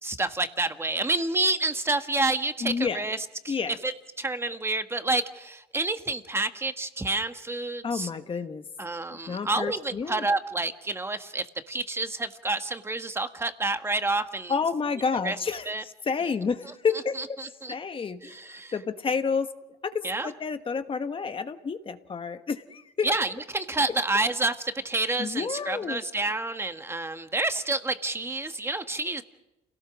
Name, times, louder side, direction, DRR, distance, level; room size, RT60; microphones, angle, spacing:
voice 1, 0.0-3.9 4.2-8.1 8.8-14.5 15.2-15.4 15.7-15.8 17.2-17.7 18.2-18.7 20.0-20.3 23.0-29.2, right 2 dB, 15° right, 8 dB, 1.5 m, -29 dB
voice 2, 2.6-3.0 3.5-3.8 7.8-8.6 9.3-10.3 14.5-17.2 17.7-19.5 19.8-23.1 23.9-24.0 25.2-26.0, left 5 dB, 30° left, 9 dB, 1.2 m, -30 dB
28.5 x 18.0 x 6.3 m, 0.95 s
cardioid pair, 110°, 17 cm